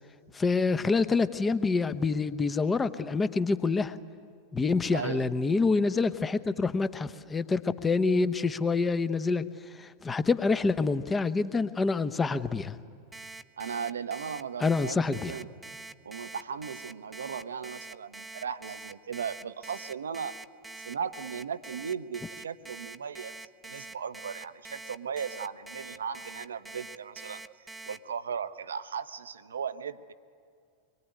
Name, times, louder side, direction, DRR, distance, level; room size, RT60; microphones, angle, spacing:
voice 1, 0.3-4.0 4.5-9.4 9.7-12.8 14.6-15.3, left 4 dB, 15° left, 13 dB, 1.0 m, -27 dB
voice 2, 4.9-5.3 13.6-15.5 16.0-20.3 20.8-23.3 23.6-27.4 27.9-30.1, right 7 dB, 70° right, 13 dB, 0.9 m, -37 dB
Alarm, 13.1-28.0, right 3 dB, 10° right, 0.7 m, -44 dB
24.5 x 22.5 x 9.4 m, 2.2 s
figure-of-eight pair, 90°, 0 cm